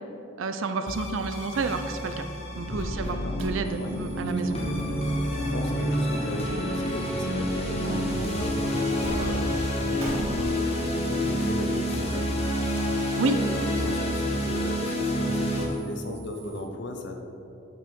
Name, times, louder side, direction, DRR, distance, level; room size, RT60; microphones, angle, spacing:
voice 1, 0.4-2.1 2.6-4.6 13.2-13.4, right 3 dB, 70° right, 9 dB, 0.5 m, -30 dB
sound 1, 0.9-15.6, equal, 30° left, 1.0 m, -28 dB
sound 2, 2.8-3.1 3.4-9.1 9.4-9.5 10.0-16.6, right 2 dB, 85° right, 1.7 m, -46 dB
voice 2, 2.9-3.4 3.8-12.3 12.6-17.1, left 1 dB, 60° left, 4 dB, 0.7 m, -36 dB
sound 3, 6.4-12.1, equal, 30° right, 1.4 m, -45 dB
6.3 x 5.4 x 4.5 m, 2.7 s
head